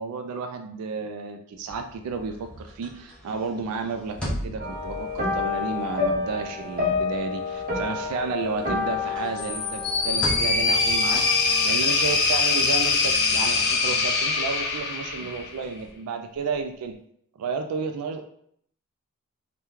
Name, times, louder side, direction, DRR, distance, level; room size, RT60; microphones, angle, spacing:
voice 1, 0.0-16.9 17.4-18.3, right 5 dB, 85° right, 6 dB, 0.3 m, -32 dB
sound 1, 1.6-8.0 8.4-13.8, equal, 5° left, 0.7 m, -39 dB
sound 2, 4.6-14.2 14.4-14.8 15.2-15.3, left 4 dB, 40° right, 0.7 m, -31 dB
sound 3, 9.4-15.6, left 4 dB, 50° left, 0.5 m, -23 dB
2.8 x 2.2 x 3.5 m, 0.66 s
head